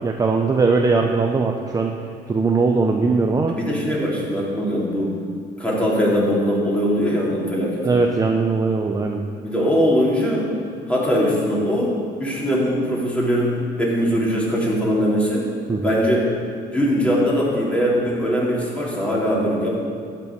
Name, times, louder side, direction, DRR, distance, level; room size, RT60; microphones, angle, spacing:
voice 1, 0.0-1.9 2.3-3.5 7.8-9.3 15.7-15.9, right 4 dB, 20° right, 2 dB, 0.8 m, -20 dB
voice 2, 3.5-5.2 5.6-7.8 9.4-10.5 10.9-15.5 15.8-16.3 16.7-19.7, equal, 5° left, -5 dB, 3.7 m, -21 dB
12.5 x 6.2 x 9.0 m, 2.3 s
cardioid pair, 110°, 17 cm